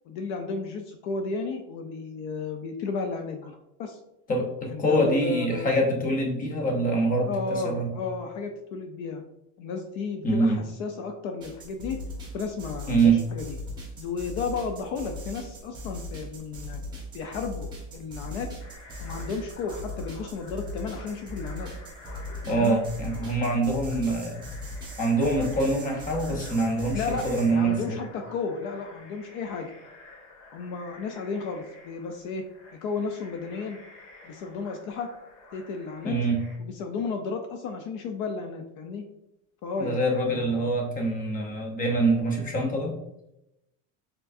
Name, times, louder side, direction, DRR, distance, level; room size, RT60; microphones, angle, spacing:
voice 1, 0.1-3.5 3.8-4.0 4.7-5.9 7.2-9.2 9.6-12.0 12.3-13.6 14.0-16.8 17.1-18.5 19.0-21.7 22.5-22.8 26.9-29.7 30.5-32.4 32.7-33.8 34.2-35.1 35.5-36.1 36.6-39.0 39.6-40.0 40.3-40.7, left 4 dB, 60° left, 5 dB, 0.6 m, -33 dB
voice 2, 4.3-7.9 10.2-10.6 12.9-13.2 22.5-24.4 25.0-28.0 36.0-36.4 39.8-42.9, right 2 dB, 20° left, 1 dB, 0.8 m, -25 dB
sound 1, 11.4-27.5, left 1 dB, 10° right, 1.3 m, -39 dB
sound 2, 18.6-36.6, left 2 dB, 85° left, 1.6 m, -49 dB
4.6 x 3.8 x 2.6 m, 0.87 s
cardioid pair, 150°, 37 cm